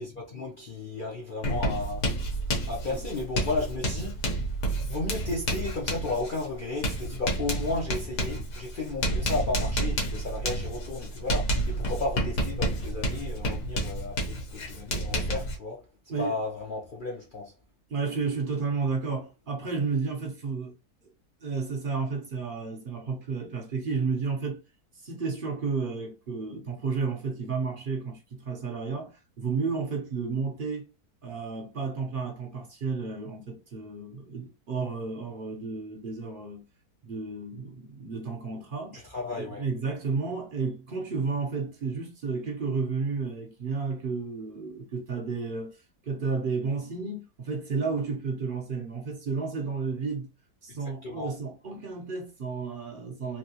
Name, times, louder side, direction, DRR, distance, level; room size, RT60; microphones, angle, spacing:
voice 1, 0.0-2.1 2.7-4.2 4.9-15.8 16.2-17.5 39.1-39.6 51.0-51.3, left 3 dB, 60° left, 0.5 m, -33 dB
Writing, 1.4-15.6, right 1 dB, 90° left, 1.5 m, -30 dB
voice 2, 17.9-20.8 21.4-24.6 24.9-30.9 31.2-36.6 37.0-39.1 39.4-50.3 50.6-53.4, right 4 dB, 60° right, 0.5 m, -32 dB
3.2 x 2.6 x 2.7 m
omnidirectional pair, 1.6 m